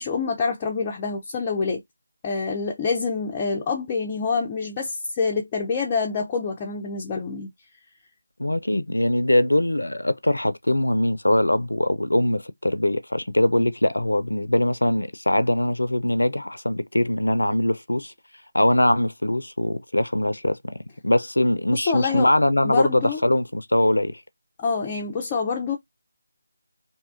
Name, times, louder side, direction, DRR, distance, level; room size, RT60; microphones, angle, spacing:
voice 1, 0.0-1.8 2.2-7.5 21.7-22.3 22.6-23.2 24.6-25.8, left 5 dB, 20° left, 0.4 m, -26 dB
voice 2, 8.4-18.1 18.5-20.6 21.0-24.2, left 1 dB, 85° left, 0.4 m, -22 dB
2.6 x 2.3 x 2.4 m
figure-of-eight pair, 165°, 0 cm